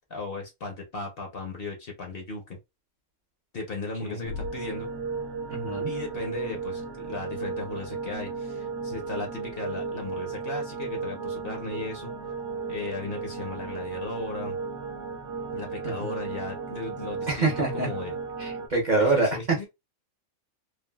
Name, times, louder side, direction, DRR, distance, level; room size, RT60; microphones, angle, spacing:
voice 1, 0.1-2.6 3.5-4.9 5.9-12.1 12.7-14.6 15.5-18.1 18.9-19.7, left 3 dB, 50° left, 0.8 m, -36 dB
sound 1, 4.2-18.7, right 4 dB, 60° right, 1.0 m, -35 dB
voice 2, 5.5-5.9 15.8-15.9 17.3-17.9 18.4-19.3, right 3 dB, 40° right, 0.9 m, -25 dB
3.3 x 2.3 x 2.2 m
omnidirectional pair, 1.5 m